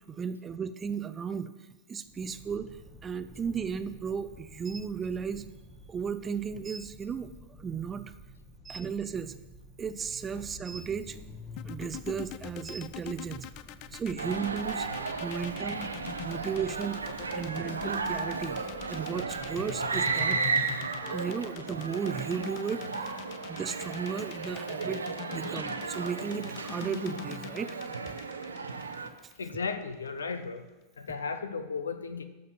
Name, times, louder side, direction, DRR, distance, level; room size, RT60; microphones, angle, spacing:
voice 1, 0.1-1.5 1.9-5.4 5.9-7.3 7.6-8.1 8.6-9.4 9.8-11.2 11.6-13.5 13.9-15.9 16.2-23.1 23.5-25.0 25.3-27.8 28.1-28.2 29.0-29.1, right 6 dB, 20° right, 12 dB, 0.6 m, -35 dB
sound 1, 2.0-20.4, equal, 10° left, 1.3 m, -50 dB
sound 2, 11.6-29.7, left 14 dB, 40° left, 0.5 m, -43 dB
sound 3, 14.2-29.1, right 4 dB, 75° right, 0.8 m, -34 dB
voice 2, 29.4-30.6 31.0-32.2, left 4 dB, 70° left, 11 dB, 0.8 m, -35 dB
12.0 x 5.3 x 7.1 m, 1.1 s
figure-of-eight pair, 90°, 0 cm